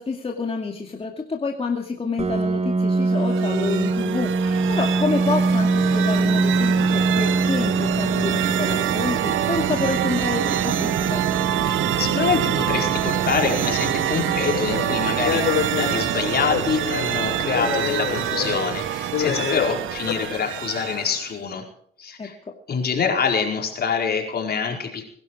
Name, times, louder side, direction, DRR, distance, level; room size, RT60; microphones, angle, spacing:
voice 1, 0.0-11.3 22.2-22.3, left 4 dB, 30° left, 0 dB, 2.3 m, -28 dB
Piano, 2.2-17.6, right 3 dB, 30° right, 1.7 m, -25 dB
sound 1, 3.1-21.3, right 12 dB, 80° right, 1.0 m, -26 dB
voice 2, 11.6-21.6 22.0-22.3 22.7-25.1, left 6 dB, 55° left, 2 dB, 4.8 m, -25 dB
sound 2, 13.7-20.3, left 8 dB, 80° left, 6.5 m, -28 dB
22.0 x 12.0 x 4.8 m, 0.62 s
cardioid pair, 90°, 20 cm